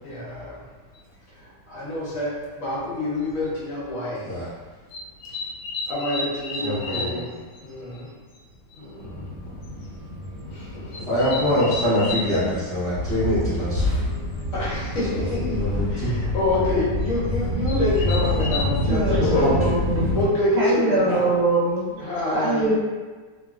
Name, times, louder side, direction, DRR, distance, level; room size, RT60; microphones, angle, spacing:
voice 1, 0.0-0.7 1.3-4.4 5.3-5.4 5.9-8.1 8.7-9.2 10.5-11.1 14.5-15.6 15.9-19.4 20.1-21.3 22.0-22.7, left 2 dB, 55° left, -7 dB, 1.1 m, -27 dB
sound 1, 0.9-1.0 2.4-2.5 3.2-3.5 4.9-7.2 7.5-7.6 7.9-8.0 8.3-8.4 8.7-8.8 9.6-9.9 10.9-12.3 14.4-14.5 14.8-15.1 17.0-17.1 17.7-18.6, left 3 dB, 75° left, 1.2 m, -32 dB
voice 2, 6.6-7.2 10.9-13.9 15.1-16.7 19.2-19.7 21.1-21.2, left 1 dB, 20° right, -15 dB, 0.9 m, -24 dB
sound 2, 9.0-20.3, left 1 dB, 55° right, 1.0 m, -27 dB
voice 3, 18.9-20.1 20.6-21.9 22.3-22.8, right 2 dB, 75° right, -7 dB, 1.2 m, -23 dB
3.0 x 2.4 x 2.3 m, 1.4 s
omnidirectional pair, 1.9 m